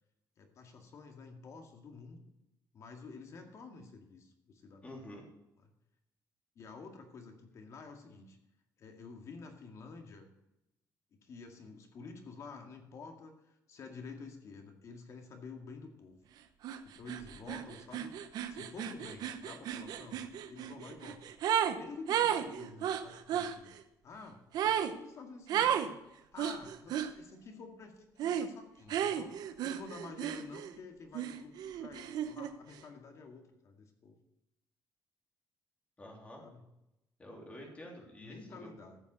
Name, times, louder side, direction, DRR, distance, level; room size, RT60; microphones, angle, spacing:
voice 1, 0.4-2.3 2.7-4.9 5.6-5.7 6.6-8.4 8.8-10.3 11.1-16.2 16.8-18.1 18.5-21.3 21.8-23.7 24.0-26.0 26.3-34.2 36.4-36.6 38.2-39.0, left 4 dB, 45° left, 4 dB, 2.2 m, -50 dB
voice 2, 4.8-5.3 36.0-36.4 37.2-38.7, left 1 dB, 20° left, -1 dB, 3.3 m, -49 dB
sound 1, 16.6-16.8 17.1-21.8 22.1-23.5 24.5-24.9 25.5-25.9 26.4-27.1 28.2-28.5 28.9-30.8 31.1-32.5, right 9 dB, 70° right, 1.0 m, -33 dB
14.5 x 7.2 x 6.8 m, 0.90 s
cardioid pair, 155°, 7 cm